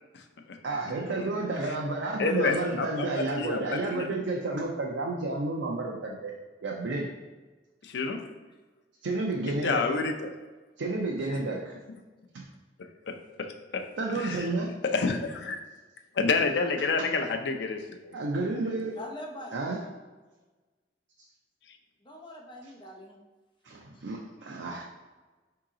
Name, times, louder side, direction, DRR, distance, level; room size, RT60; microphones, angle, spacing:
voice 1, 0.6-6.3 6.6-7.1 9.0-9.9 10.8-11.7 12.3-12.5 14.0-14.7 17.0-17.1 18.1-19.0 19.5-19.8 23.6-24.8, right 2 dB, 85° right, -1 dB, 0.5 m, -31 dB
voice 2, 2.2-4.2 7.8-8.2 9.6-10.3 12.8-13.5 13.7-13.8 14.2-14.4 14.8-15.6 16.2-18.1, left 4 dB, 65° left, 5 dB, 0.5 m, -29 dB
voice 3, 18.9-19.6 22.0-23.2 23.9-24.1, left 1 dB, 30° left, 0 dB, 0.7 m, -43 dB
4.7 x 2.8 x 3.7 m, 1.2 s
head